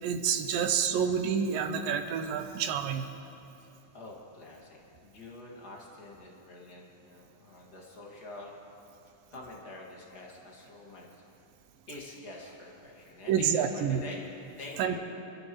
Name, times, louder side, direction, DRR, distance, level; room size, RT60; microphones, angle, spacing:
voice 1, 0.0-3.1 13.3-14.0 14.8-15.0, right 7 dB, 80° right, 7 dB, 2.5 m, -28 dB
voice 2, 3.9-8.5 9.3-11.2 11.9-14.2 14.6-15.0, left 2 dB, 35° left, -3 dB, 2.1 m, -46 dB
28.5 x 12.5 x 3.2 m, 2.9 s
omnidirectional pair, 4.0 m